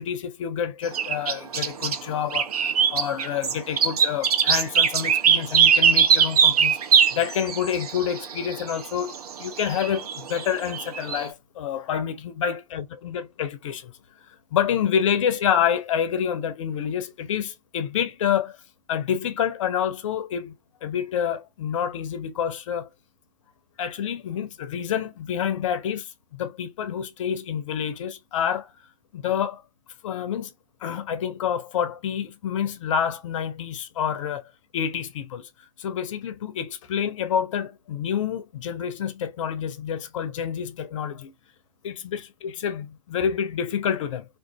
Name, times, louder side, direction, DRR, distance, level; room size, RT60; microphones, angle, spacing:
voice 1, 0.0-6.8 7.1-13.9 14.3-18.6 18.9-20.5 20.8-22.9 23.8-28.7 29.1-29.6 30.0-30.5 30.8-34.4 34.7-35.5 35.8-41.3 41.8-44.3, left 8 dB, 50° left, 0.5 m, -28 dB
sound 1, 0.9-2.0 2.3-11.2, right 7 dB, 65° right, 0.6 m, -21 dB
2.5 x 2.4 x 2.3 m
figure-of-eight pair, 120°, 21 cm